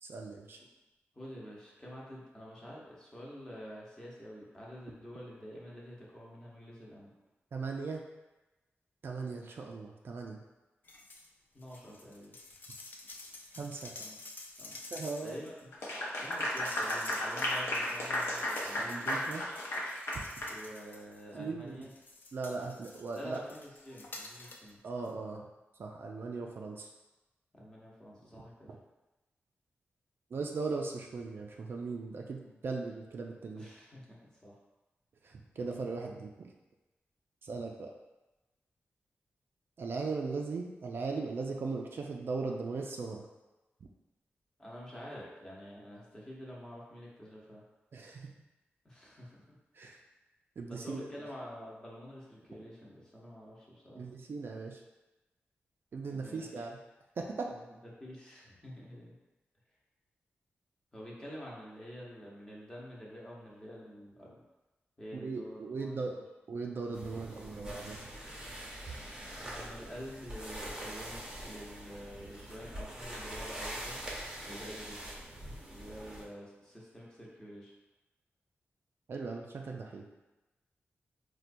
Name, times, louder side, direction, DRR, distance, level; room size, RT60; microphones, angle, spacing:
voice 1, 0.0-0.6 7.5-8.0 9.0-10.4 13.5-13.9 14.9-15.4 18.7-19.4 20.1-20.2 21.3-21.9 22.3-23.4 24.8-25.5 25.8-26.9 28.3-28.4 30.3-33.7 35.2-36.5 37.4-37.9 39.8-43.3 47.9-48.3 49.7-50.0 50.6-51.2 54.0-54.8 55.9-56.8 57.2-57.5 65.1-66.2 66.5-68.1 79.1-80.0, right 4 dB, 60° right, 1 dB, 0.3 m, -38 dB
voice 2, 1.1-7.1 11.5-12.3 14.0-14.2 14.6-14.9 15.2-19.2 20.5-21.9 23.1-24.8 27.5-28.7 32.4-32.6 33.5-34.5 44.6-47.6 48.8-49.6 50.7-54.0 56.1-56.7 57.5-57.6 57.9-59.1 60.9-64.4 65.0-66.2 69.4-74.0 74.4-75.1 75.7-77.7, equal, 15° left, -5 dB, 0.8 m, -48 dB
sound 1, 10.8-11.3 11.6-21.3 21.8-24.7 25.0-25.1, left 2 dB, 45° left, 0.4 m, -50 dB
Clapping / Applause, 15.7-20.6, left 1 dB, 85° left, 0.6 m, -34 dB
sound 2, 66.9-76.2, right 1 dB, 15° right, 0.6 m, -44 dB
4.2 x 2.2 x 2.5 m, 1.1 s
wide cardioid pair, 125°, 4 cm